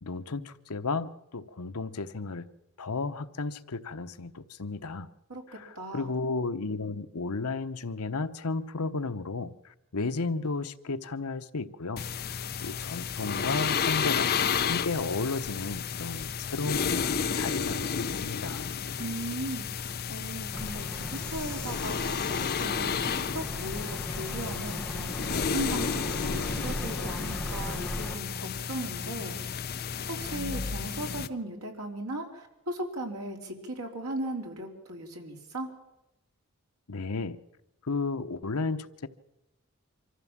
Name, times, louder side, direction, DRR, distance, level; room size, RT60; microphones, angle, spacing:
voice 1, 0.0-2.5 2.8-5.1 5.5-14.3 14.6-18.7 36.9-37.4 37.8-39.1, left 3 dB, 85° left, 1.0 m, -33 dB
voice 2, 5.3-6.1 19.0-29.6 30.1-35.7, right 1 dB, 90° right, 3.7 m, -38 dB
sound 1, 12.0-31.3, left 6 dB, 45° left, 0.7 m, -32 dB
Bird vocalization bird call bird song, 20.5-28.1, left 1 dB, 5° left, 1.3 m, -37 dB
25.0 x 14.5 x 7.4 m
head